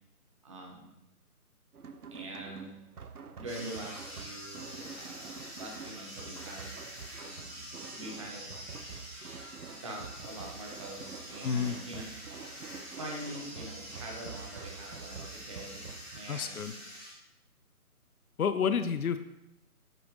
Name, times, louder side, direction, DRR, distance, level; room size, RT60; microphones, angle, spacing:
voice 1, 0.4-0.9 2.1-2.7 3.4-6.9 7.2-7.6 7.9-8.6 9.7-12.0 12.9-16.8, right 1 dB, 20° right, -1 dB, 1.1 m, -44 dB
sound 1, 1.7-16.2, right 6 dB, 80° right, 0.8 m, -47 dB
sound 2, 3.5-17.1, equal, 10° left, 2.9 m, -46 dB
voice 2, 11.4-11.8 16.3-16.7 18.4-19.2, left 6 dB, 70° left, 11 dB, 0.6 m, -29 dB
9.0 x 5.7 x 3.2 m, 0.88 s
figure-of-eight pair, 155°, 44 cm